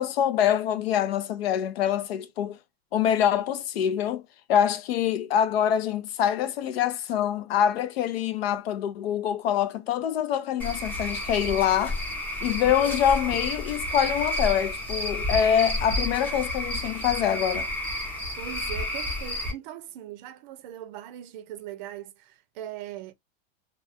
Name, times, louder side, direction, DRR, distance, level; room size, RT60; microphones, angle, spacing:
voice 1, 0.0-2.6 2.9-4.2 4.5-12.0 12.4-17.7, left 9 dB, 85° left, 0.5 m, -25 dB
Cricket / Frog, 10.6-19.5, left 1 dB, 5° left, 0.5 m, -31 dB
voice 2, 18.4-23.1, right 11 dB, 50° right, 0.5 m, -40 dB
2.3 x 2.2 x 2.7 m
supercardioid pair, 150°, 30 cm